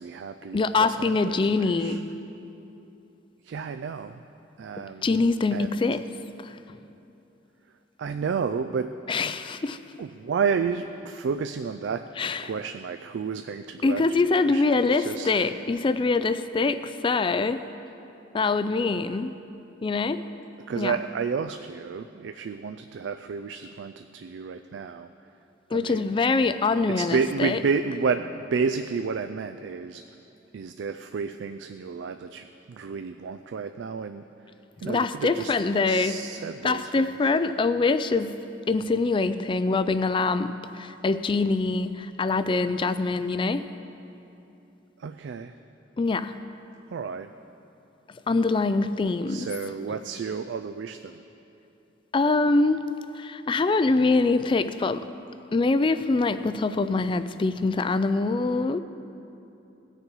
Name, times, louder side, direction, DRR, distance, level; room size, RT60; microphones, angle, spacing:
voice 1, 0.0-2.0 3.4-4.2 4.6-5.1 5.5-5.8 8.0-8.9 9.2-9.3 10.0-12.0 12.4-15.3 20.7-25.1 25.7-26.1 27.0-30.0 30.5-34.2 34.8-35.5 35.9-37.1 45.0-45.6 46.9-47.3 49.3-51.2, right 5 dB, 70° right, 8 dB, 0.3 m, -31 dB
voice 2, 0.5-2.1 4.8-6.1 6.4-6.6 9.1-9.8 12.2-12.5 13.8-17.6 18.3-19.3 19.8-20.2 20.8-21.0 25.7-27.6 34.9-36.2 36.6-38.4 38.7-43.6 46.0-46.3 48.3-49.5 52.1-52.8 53.1-55.0 55.5-58.8, left 3 dB, 25° left, 12 dB, 0.3 m, -24 dB
18.5 x 6.6 x 4.6 m, 2.9 s
head